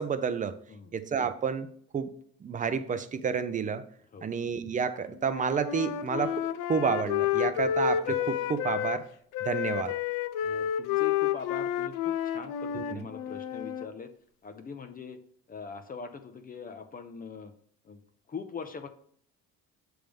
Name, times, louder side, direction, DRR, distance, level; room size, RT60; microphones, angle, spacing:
voice 1, 0.0-0.6 0.9-1.7 1.9-2.1 2.4-3.8 4.2-9.1 9.4-10.0 12.7-13.1, right 6 dB, 25° right, 11 dB, 0.5 m, -30 dB
Wind instrument woodwind instrument, 5.2-9.0 9.3-13.9, left 10 dB, 80° left, 0.5 m, -30 dB
voice 2, 10.4-14.1 14.4-15.2 15.5-17.5 17.8-18.0 18.3-18.9, left 5 dB, 25° left, 7 dB, 0.6 m, -42 dB
7.5 x 3.5 x 5.2 m, 0.63 s
cardioid pair, 120°, 32 cm